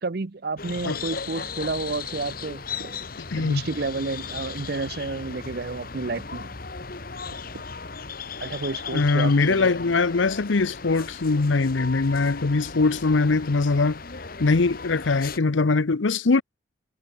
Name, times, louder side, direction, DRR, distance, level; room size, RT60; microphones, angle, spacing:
voice 1, 0.0-3.0 3.4-6.5 8.4-10.0, right 3 dB, 50° right, 0.7 m, -31 dB
sound 1, 0.6-15.4, left 5 dB, 50° left, 1.4 m, -36 dB
voice 2, 3.3-3.6 8.9-14.0 14.4-16.4, left 3 dB, 75° left, 0.7 m, -22 dB
head